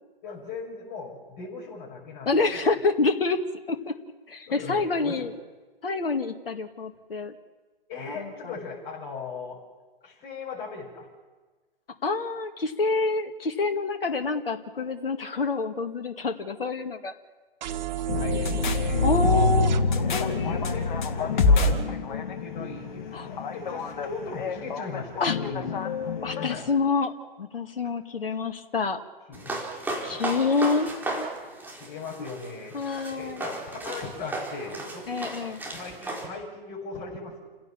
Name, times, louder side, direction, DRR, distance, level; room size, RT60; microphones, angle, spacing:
voice 1, 0.2-2.7 4.5-5.3 7.9-9.6 10.0-11.1 17.8-19.5 19.9-25.7 26.4-26.7 28.3-28.4 29.3-29.6 29.8-30.4 31.7-32.8 33.1-35.0 35.7-37.5, left 4 dB, 35° left, -4 dB, 6.6 m, -38 dB
voice 2, 2.3-3.4 3.7-3.9 4.3-5.3 5.8-7.4 8.2-8.3 12.0-17.1 19.0-19.7 20.1-20.7 23.1-23.3 25.2-25.4 26.2-27.1 27.4-29.0 30.0-30.9 31.2-31.3 32.7-33.4 35.1-35.6, left 3 dB, 70° left, 7 dB, 2.1 m, -27 dB
sound 1, 17.6-19.8, right 12 dB, 50° right, 1.4 m, -32 dB
sound 2, 18.1-26.5, left 4 dB, 55° left, 2.7 m, -26 dB
sound 3, 29.3-36.3, right 2 dB, 5° right, 4.3 m, -35 dB
29.5 x 16.5 x 7.3 m, 1.3 s
figure-of-eight pair, 120°, 29 cm